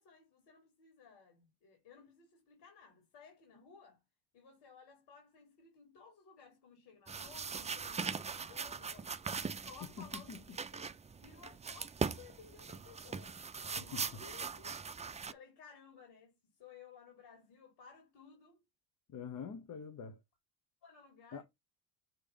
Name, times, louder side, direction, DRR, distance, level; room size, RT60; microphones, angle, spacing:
voice 1, 0.0-4.0 4.3-9.1 9.5-10.9 11.2-13.3 13.7-14.9 15.3-18.6 20.8-21.4, left 6 dB, 65° left, 4.1 m, -58 dB
sound 1, 7.1-15.3, right 5 dB, 15° right, 0.5 m, -41 dB
voice 2, 13.8-14.2 19.1-20.2 21.3-21.4, left 6 dB, 45° left, 1.2 m, -45 dB
7.5 x 3.4 x 5.3 m
supercardioid pair, 80°, 44 cm